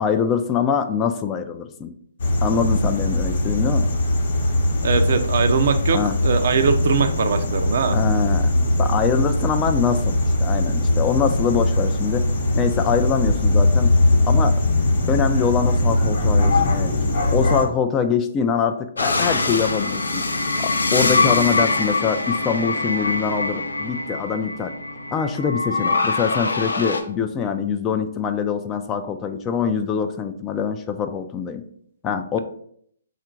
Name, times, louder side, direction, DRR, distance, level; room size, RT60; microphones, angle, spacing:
voice 1, 0.0-1.9 2.4-3.9 5.9-6.1 7.9-8.5 8.8-12.3 12.6-13.9 14.2-14.5 15.1-16.9 17.3-20.2 20.6-24.7 25.1-31.6 32.0-32.4, left 6 dB, 20° left, 7 dB, 0.3 m, -24 dB
sound 1, 2.2-17.6, left 2 dB, 60° left, 0.8 m, -20 dB
voice 2, 4.8-8.0, right 6 dB, 60° right, 8 dB, 0.4 m, -21 dB
sound 2, 19.0-27.0, left 3 dB, 85° left, 0.5 m, -23 dB
3.6 x 2.4 x 4.4 m, 0.66 s
hypercardioid pair, 135°, 0 cm